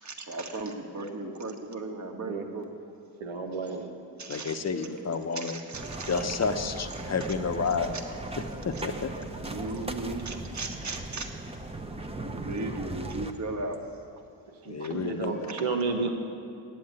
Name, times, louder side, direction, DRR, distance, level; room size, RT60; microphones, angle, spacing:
voice 1, 0.0-2.7 4.2-4.6 5.3-6.4 6.9-7.1 8.7-8.8 9.4-11.3 12.3-13.8 15.5-15.6, right 2 dB, 35° right, 3 dB, 1.4 m, -36 dB
voice 2, 3.2-3.9 14.6-16.1, right 4 dB, 85° right, 3 dB, 1.2 m, -31 dB
voice 3, 4.3-5.6 6.1-7.9 8.6-9.1 14.6-15.8, left 5 dB, 35° left, 8 dB, 0.8 m, -30 dB
sound 1, 5.7-13.3, right 2 dB, 15° right, 0.8 m, -38 dB
8.4 x 7.7 x 9.0 m, 2.5 s
cardioid pair, 50°, 47 cm